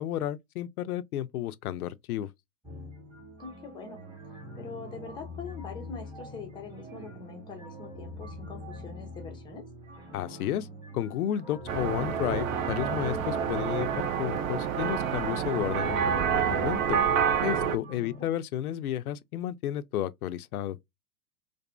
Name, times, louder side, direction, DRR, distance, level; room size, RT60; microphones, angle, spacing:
voice 1, 0.0-2.3 10.1-10.7 10.9-17.0 17.4-20.8, left 11 dB, 70° left, 0.5 m, -32 dB
sound 1, 2.6-18.2, left 1 dB, 5° right, 0.9 m, -44 dB
voice 2, 3.4-4.0 4.5-9.6 18.2-18.3, left 5 dB, 10° left, 0.5 m, -43 dB
sound 2, 11.7-17.8, right 8 dB, 60° right, 0.6 m, -28 dB
2.6 x 2.5 x 2.2 m
hypercardioid pair, 115°, 46 cm